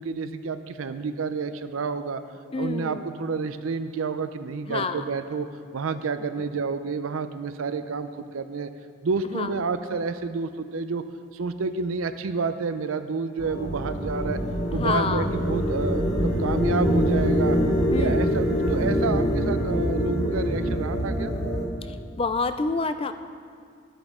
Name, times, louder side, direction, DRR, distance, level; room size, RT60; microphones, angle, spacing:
voice 1, 0.0-2.2 2.6-5.5 5.7-8.7 9.0-11.0 11.3-14.4 14.7-17.6 18.0-21.3, right 4 dB, 85° right, 11 dB, 0.5 m, -29 dB
voice 2, 2.5-3.1 4.7-5.0 6.4-6.5 9.2-9.5 14.7-15.3 17.9-18.4 21.8-23.1, left 4 dB, 25° left, 10 dB, 0.3 m, -28 dB
sound 1, 13.4-21.6, equal, 65° left, 2.2 m, -24 dB
12.5 x 8.8 x 3.6 m, 2.2 s
head